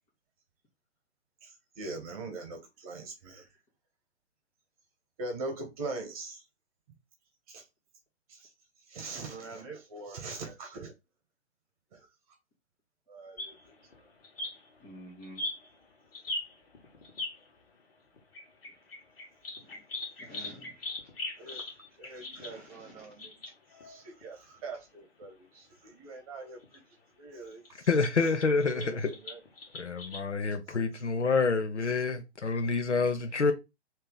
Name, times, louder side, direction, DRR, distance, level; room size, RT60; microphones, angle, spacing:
voice 1, 1.4-3.5 5.2-6.4 7.5-7.6 8.3-8.5 8.9-10.9 11.9-12.1 13.1-13.7 21.4-21.6 22.0-23.3 23.8-26.8 27.2-27.9 28.7-29.4 30.7-30.8, right 3 dB, 30° right, 1.2 m, -42 dB
sound 1, 13.4-17.5 18.2-24.3 24.6-24.8 25.2-25.3 26.6-26.8 27.5-30.2, left 2 dB, 55° left, 1.4 m, -41 dB
voice 2, 14.8-15.4 19.6-19.8 20.2-20.9 22.4-23.1, equal, 10° left, 0.5 m, -50 dB
voice 3, 27.9-29.1 29.7-33.5, left 4 dB, 75° left, 0.9 m, -27 dB
3.1 x 2.8 x 3.8 m
figure-of-eight pair, 125°, 35 cm